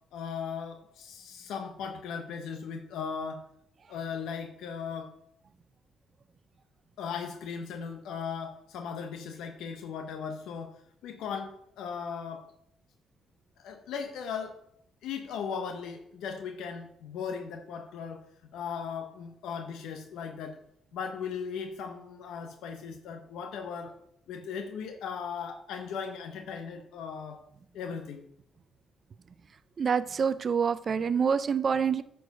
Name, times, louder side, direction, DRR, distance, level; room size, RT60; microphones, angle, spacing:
voice 1, 0.1-3.5 3.9-5.2 7.0-12.5 13.6-14.6 15.0-18.2 18.5-20.6 20.9-23.9 24.3-27.4 27.7-28.3, left 6 dB, 85° left, 5 dB, 0.8 m, -37 dB
voice 2, 29.8-32.0, right 6 dB, 45° right, 14 dB, 0.4 m, -26 dB
9.4 x 4.7 x 5.3 m, 0.74 s
cardioid pair, 90°, 0 cm